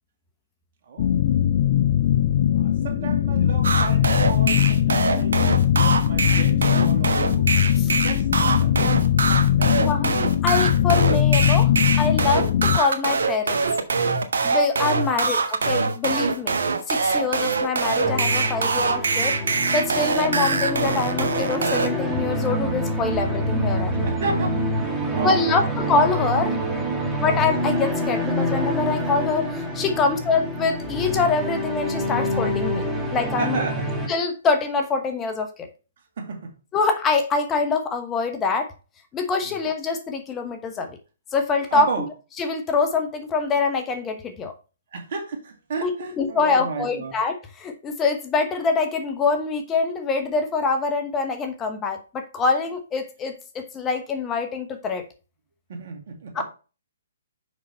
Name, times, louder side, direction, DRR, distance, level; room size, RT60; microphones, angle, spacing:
voice 1, 0.9-1.2 2.5-5.4 5.7-7.5 8.0-9.2 9.6-10.1 15.0-15.2 16.4-16.5 17.0-17.1 23.9-25.8 26.9-27.1 29.9-30.0 33.4-33.9 36.2-36.5 39.4-39.5 41.7-42.1 44.9-47.1 55.7-56.4, right 4 dB, 55° right, 2.3 m, -33 dB
sound 1, 1.0-12.8, left 11 dB, 50° left, 0.4 m, -20 dB
sound 2, 3.6-21.9, right 4 dB, 75° right, 1.1 m, -23 dB
voice 2, 9.8-10.1 10.4-11.7 12.0-13.6 14.4-16.6 16.9-19.4 19.7-24.0 25.2-26.6 27.2-32.8 33.1-33.6 34.1-35.7 36.7-38.7 39.1-41.0 41.3-42.1 42.4-44.5 45.8-55.0 56.3-56.4, left 4 dB, 20° left, 1.0 m, -24 dB
sound 3, 18.0-34.1, equal, ahead, 1.7 m, -26 dB
6.3 x 5.6 x 4.4 m
hypercardioid pair, 135°, 0 cm